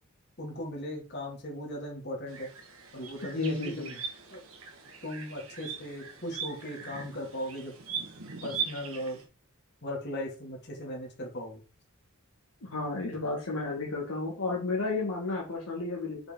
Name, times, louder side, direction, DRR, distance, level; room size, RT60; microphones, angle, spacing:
voice 1, 0.4-2.5 2.9-3.9 4.3-4.4 5.0-7.7 8.4-9.2 9.8-11.6, equal, 50° left, -1 dB, 2.3 m, -37 dB
sound 1, 2.3-9.2, right 6 dB, 65° right, 1.6 m, -40 dB
voice 2, 3.4-3.9 12.7-16.2, left 3 dB, 75° left, -2 dB, 1.7 m, -32 dB
6.5 x 4.9 x 3.7 m, 0.36 s
head